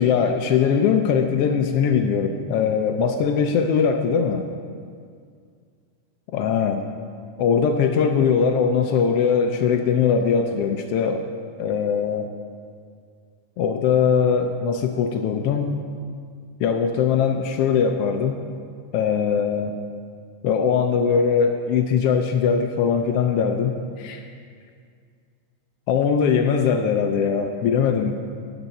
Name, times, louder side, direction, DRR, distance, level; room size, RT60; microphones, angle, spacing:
voice 1, 0.0-4.4 6.3-6.8 7.4-11.2 11.6-12.3 13.6-15.7 16.6-18.4 18.9-19.7 20.4-24.3 25.9-28.2, left 6 dB, 85° left, 5 dB, 1.3 m, -21 dB
15.0 x 9.1 x 4.1 m, 2.1 s
omnidirectional pair, 3.4 m